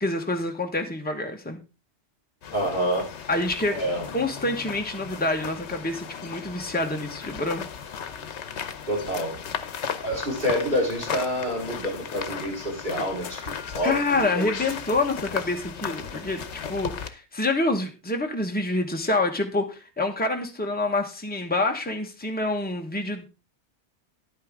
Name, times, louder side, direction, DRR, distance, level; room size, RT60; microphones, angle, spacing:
voice 1, 0.0-1.6 3.3-3.8 4.1-7.6 13.8-16.4 16.7-23.3, left 2 dB, 10° left, 3 dB, 1.2 m, -27 dB
sound 1, 2.4-17.1, left 7 dB, 75° left, 1.2 m, -36 dB
voice 2, 2.5-3.1 3.7-4.1 8.9-9.4 10.0-14.4, equal, 40° right, -3 dB, 5.0 m, -28 dB
10.5 x 8.7 x 3.6 m, 0.29 s
omnidirectional pair, 1.2 m